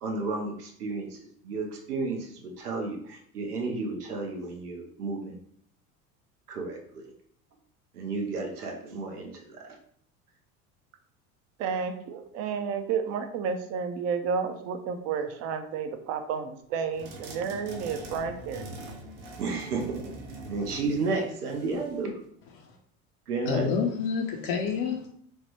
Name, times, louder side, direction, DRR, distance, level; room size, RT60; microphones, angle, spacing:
voice 1, 0.0-5.4 6.5-7.1 7.9-9.8 19.4-20.2 20.4-22.2 23.3-23.7, right 3 dB, 90° right, 0.6 m, -32 dB
voice 2, 11.6-18.6, right 6 dB, 35° right, 0.4 m, -31 dB
sound 1, 17.0-22.0, right 1 dB, 60° right, 0.8 m, -43 dB
voice 3, 23.5-25.1, left 6 dB, 50° left, 0.5 m, -28 dB
3.1 x 2.1 x 2.9 m
hypercardioid pair, 75°, 45 cm